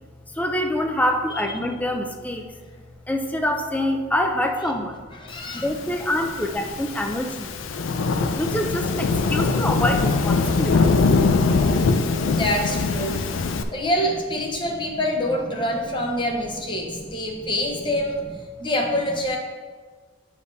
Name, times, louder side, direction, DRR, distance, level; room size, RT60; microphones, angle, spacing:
voice 1, 0.3-2.5 3.1-5.0 5.5-7.5 8.1-10.9 15.6-15.7 16.9-17.5, left 1 dB, 10° left, 4 dB, 0.4 m, -26 dB
voice 2, 5.1-5.7 7.9-8.2 12.2-13.2 13.7-18.2 18.6-19.4, left 1 dB, 25° left, 0 dB, 0.9 m, -26 dB
Thunderstorm / Rain, 5.9-13.6, left 4 dB, 80° left, 0.4 m, -22 dB
8.1 x 5.1 x 2.7 m, 1.5 s
head